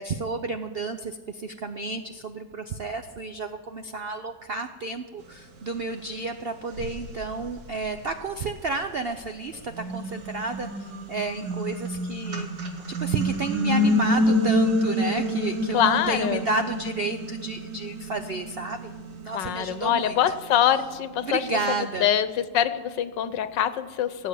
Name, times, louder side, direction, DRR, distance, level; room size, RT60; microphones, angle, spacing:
voice 1, 0.0-12.5 12.9-20.2 21.2-22.1, right 3 dB, 70° right, 7 dB, 0.5 m, -31 dB
sound 1, 6.0-6.1 6.7-9.0 9.5-20.8, left 1 dB, 90° right, 2.3 m, -28 dB
voice 2, 15.7-16.4 19.3-21.5 21.8-24.3, left 10 dB, 90° left, 12 dB, 1.5 m, -24 dB
18.5 x 7.5 x 8.5 m, 1.5 s
omnidirectional pair, 1.9 m